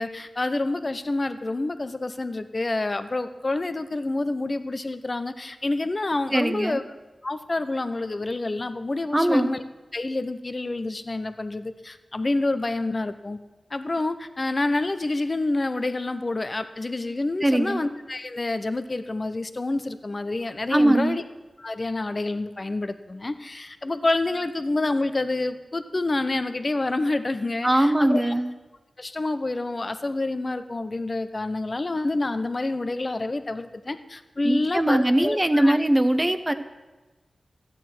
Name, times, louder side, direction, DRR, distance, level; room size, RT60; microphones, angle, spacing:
voice 1, 0.0-6.8 7.2-9.6 9.9-13.4 13.7-21.2 21.6-28.3 29.0-35.7, left 2 dB, 45° left, 10 dB, 0.9 m, -28 dB
voice 2, 6.3-6.8 9.1-9.5 17.4-17.8 20.7-21.2 27.6-28.5 34.4-36.5, right 1 dB, 20° right, 10 dB, 1.0 m, -21 dB
13.0 x 9.0 x 6.2 m, 1.2 s
cardioid pair, 45°, 0 cm